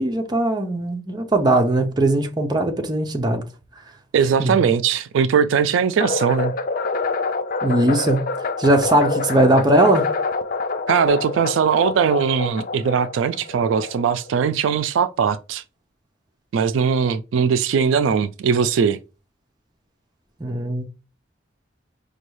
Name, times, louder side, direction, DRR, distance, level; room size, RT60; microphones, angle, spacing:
voice 1, 0.0-3.4 4.4-4.6 7.6-8.2 8.6-10.1 20.4-20.9, right 1 dB, 20° right, 0.6 m, -19 dB
voice 2, 4.1-6.5 10.9-15.6 16.5-19.0, right 6 dB, 85° right, 0.3 m, -20 dB
sound 1, 6.0-14.3, left 3 dB, 45° left, 0.4 m, -26 dB
5.3 x 2.3 x 3.1 m
head